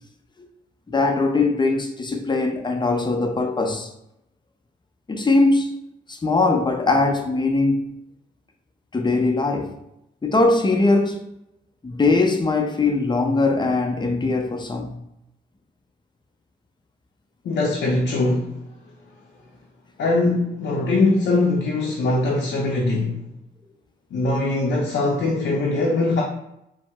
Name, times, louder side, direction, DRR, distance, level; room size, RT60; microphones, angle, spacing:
voice 1, 0.9-3.9 5.1-5.7 6.1-7.9 8.9-9.7 10.2-11.3 11.8-15.0, left 3 dB, 25° left, 0.6 m, -21 dB
voice 2, 17.4-18.6 20.0-23.3 24.1-26.2, left 2 dB, 70° left, 0.6 m, -21 dB
4.1 x 2.0 x 2.2 m
supercardioid pair, 55°, 18 cm